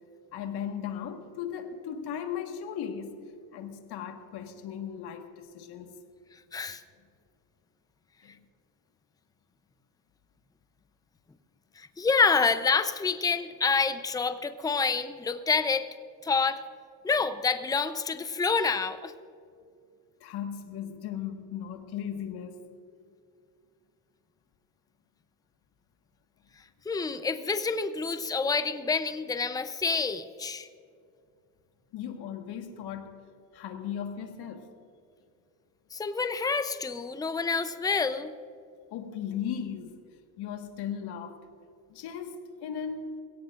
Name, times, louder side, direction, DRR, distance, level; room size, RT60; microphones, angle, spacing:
voice 1, 0.3-3.2 3.5-6.0 8.2-8.4 20.2-22.6 31.9-33.1 33.5-34.7 38.9-40.0 40.4-41.4 41.9-43.1, left 8 dB, 70° left, 5 dB, 1.7 m, -37 dB
voice 2, 11.8-15.9 16.2-16.6 17.0-19.1 26.9-30.7 35.9-38.3, left 5 dB, 10° left, 11 dB, 0.6 m, -27 dB
21.5 x 17.5 x 2.5 m, 2.3 s
cardioid pair, 100°, 40 cm